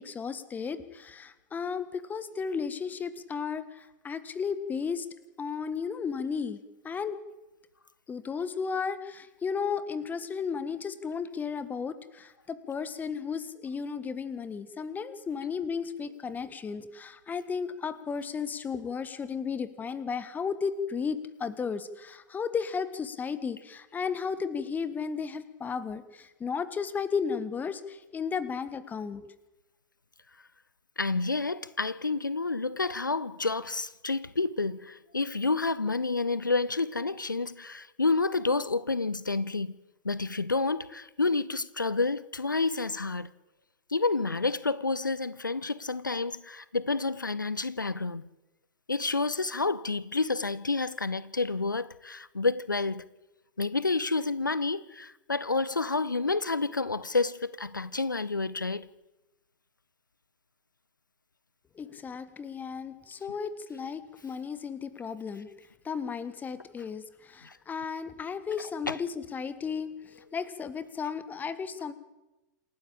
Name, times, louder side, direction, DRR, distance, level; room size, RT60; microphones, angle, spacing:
voice 1, 0.0-5.1 5.4-7.2 8.1-29.3 61.7-65.5 65.8-71.9, left 6 dB, 15° left, 1.5 m, -34 dB
voice 2, 31.0-39.8 40.0-43.3 43.9-48.2 48.9-53.1 53.6-58.9 67.4-67.6 68.9-69.0, left 3 dB, 85° left, 0.7 m, -29 dB
28.0 x 12.5 x 8.7 m
figure-of-eight pair, 95°, 10 cm